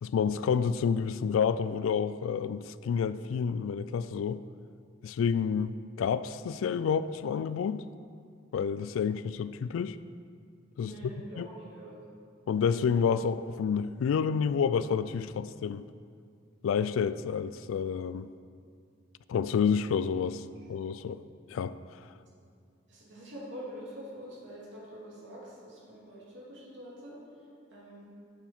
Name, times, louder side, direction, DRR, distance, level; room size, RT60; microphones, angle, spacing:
voice 1, 0.0-4.4 5.0-7.8 8.5-10.0 10.8-11.0 11.4-11.5 12.5-15.8 16.6-18.3 19.3-20.4 20.7-21.2 21.5-21.8, left 6 dB, 85° left, 0.3 m, -29 dB
voice 2, 10.8-11.9 22.1-22.2 22.9-27.2 27.7-28.1, equal, 65° right, 2.4 m, -45 dB
8.8 x 7.1 x 4.4 m
head